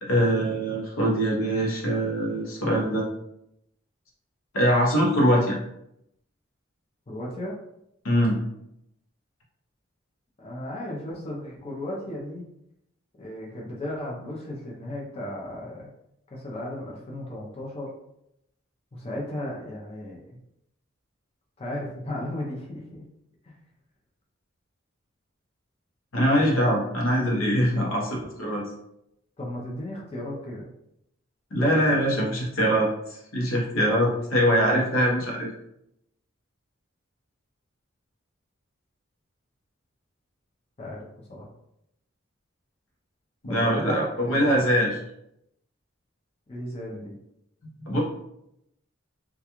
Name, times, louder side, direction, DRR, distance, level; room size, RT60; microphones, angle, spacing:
voice 1, 0.0-3.0 4.5-5.6 8.0-8.4 26.1-28.1 28.4-28.6 31.5-35.5 43.4-45.0 47.8-48.0, equal, 80° left, -2 dB, 0.8 m, -23 dB
voice 2, 7.1-7.5 10.4-12.5 13.2-15.9 16.3-17.9 18.9-20.2 21.6-23.0 23.4-23.6 27.8-27.9 29.4-30.7 40.8-41.5 43.5-44.7 46.5-47.1, left 1 dB, 30° left, -3 dB, 0.5 m, -35 dB
2.3 x 2.3 x 2.9 m, 0.80 s
head